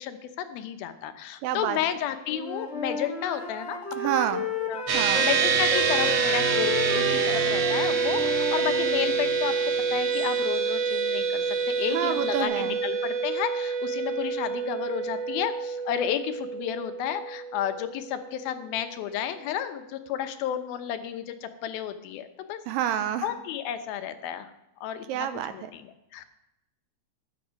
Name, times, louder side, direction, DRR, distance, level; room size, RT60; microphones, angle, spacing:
voice 1, 0.0-3.8 4.1-9.6 9.9-22.6 23.2-24.5 24.8-26.3, left 10 dB, 80° left, 9 dB, 2.6 m, -32 dB
voice 2, 1.4-1.8 4.0-4.4 4.9-5.3 11.9-12.8 22.7-23.3 25.1-25.7, right 10 dB, 80° right, 11 dB, 2.3 m, -29 dB
Wind instrument woodwind instrument, 2.3-9.1, left 2 dB, 35° left, 1.0 m, -34 dB
sound 1, 4.9-18.5, right 5 dB, 50° right, 2.1 m, -27 dB
sound 2, 5.4-12.4, right 3 dB, 30° right, 2.1 m, -42 dB
13.0 x 9.6 x 5.2 m, 0.86 s
omnidirectional pair, 4.3 m